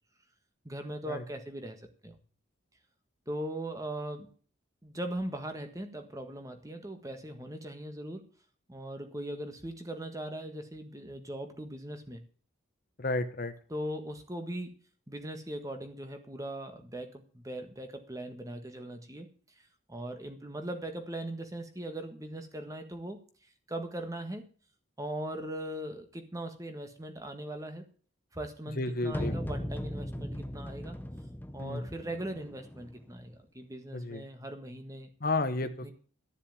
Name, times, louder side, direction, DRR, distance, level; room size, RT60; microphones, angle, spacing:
voice 1, 0.6-2.2 3.3-4.3 4.8-8.2 8.7-12.2 13.7-14.8 15.1-19.3 19.6-19.7 19.9-23.2 23.7-24.5 25.0-27.9 28.3-31.0 31.5-35.1 35.8-35.9, right 1 dB, 15° right, 6 dB, 1.6 m, -39 dB
voice 2, 13.0-13.5 28.8-29.3 31.6-31.8 33.9-34.2 35.2-35.9, left 2 dB, 45° left, 10 dB, 1.0 m, -32 dB
sound 1, 29.1-33.1, equal, 10° left, 0.7 m, -38 dB
13.0 x 7.2 x 9.0 m, 0.43 s
head